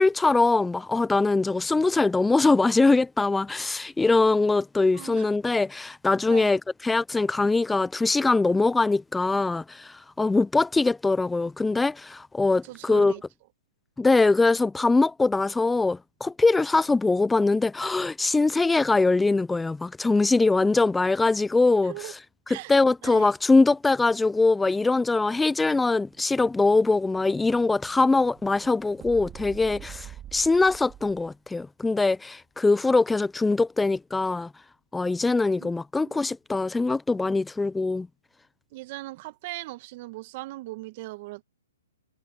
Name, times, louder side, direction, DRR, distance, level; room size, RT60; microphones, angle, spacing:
voice 1, 0.0-13.1 14.0-21.9 22.7-34.5 34.9-38.1, left 3 dB, 5° left, 0.4 m, -22 dB
voice 2, 4.9-5.3 6.3-6.5 12.6-13.2 21.8-22.1 22.5-22.7 23.0-23.3 35.5-35.7 36.0-36.3 38.7-41.4, right 20 dB, 40° right, 1.5 m, -39 dB
Explosion, 25.3-31.4, right 11 dB, 20° right, 2.5 m, -47 dB
hypercardioid pair, 140°, 0 cm